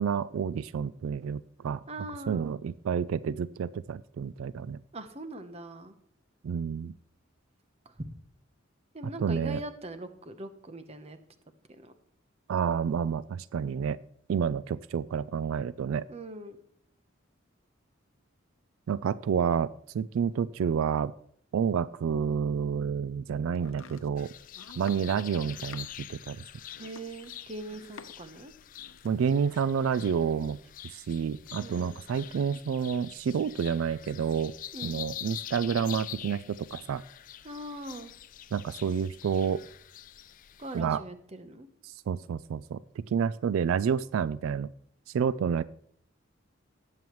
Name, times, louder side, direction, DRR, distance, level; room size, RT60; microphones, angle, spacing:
voice 1, 0.0-1.8 2.3-4.8 6.4-6.9 9.2-9.6 12.5-14.0 14.3-16.1 18.9-19.7 19.9-21.1 21.5-24.3 24.8-26.4 29.0-30.6 30.8-34.5 34.8-37.0 38.5-39.6 40.7-41.0 41.8-42.8 43.1-44.7 45.1-45.6, right 7 dB, 90° right, 17 dB, 0.3 m, -29 dB
voice 2, 1.9-2.5 4.9-6.0 8.0-8.1 8.9-11.2 11.8-11.9 16.1-16.6 26.8-28.5 31.6-32.0 34.7-35.0 37.4-38.1 40.6-41.7, right 1 dB, 30° right, 9 dB, 0.9 m, -41 dB
Domestic sounds home sounds, 23.5-28.3 28.6-29.2, left 4 dB, 80° left, 0.8 m, -51 dB
sound 1, 24.2-40.8, left 12 dB, 40° left, 0.3 m, -45 dB
18.0 x 7.6 x 3.1 m, 0.65 s
head